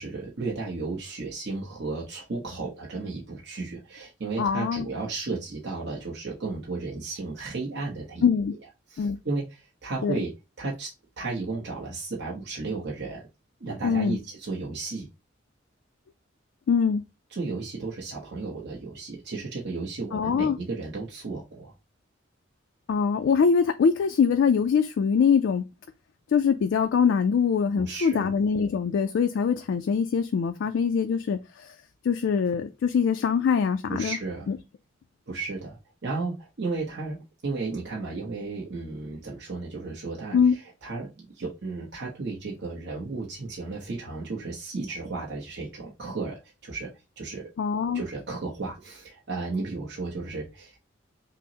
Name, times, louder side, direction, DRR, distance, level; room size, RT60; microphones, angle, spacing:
voice 1, 0.0-8.2 8.9-10.3 10.6-13.3 13.6-15.1 17.3-21.7 27.8-28.3 33.9-34.5 35.3-46.9 47.2-47.4 47.9-50.8, right 3 dB, 60° right, 0.8 m, -34 dB
voice 2, 4.4-4.9 8.2-8.5 9.0-9.2 10.0-10.2 13.8-14.2 16.7-17.0 20.1-20.6 22.9-25.6 26.3-31.7 32.0-34.2 34.5-34.6 40.3-40.6 47.6-48.0, left 6 dB, 65° left, 0.3 m, -23 dB
5.4 x 2.0 x 2.8 m
head